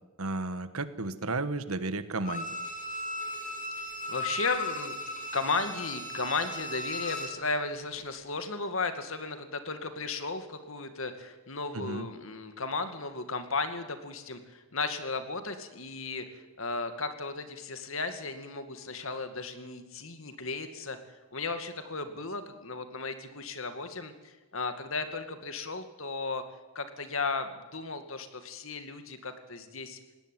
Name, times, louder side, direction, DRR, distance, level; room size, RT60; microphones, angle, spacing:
voice 1, 0.2-2.5 11.7-12.1, right 2 dB, 80° right, 12 dB, 1.4 m, -33 dB
Bowed string instrument, 2.2-7.5 7.8-7.9, left 1 dB, 35° left, 2.8 m, -36 dB
voice 2, 3.8-21.0 21.3-26.4 26.7-30.0, left 4 dB, 70° left, 8 dB, 2.2 m, -35 dB
20.0 x 17.5 x 9.2 m, 1.2 s
head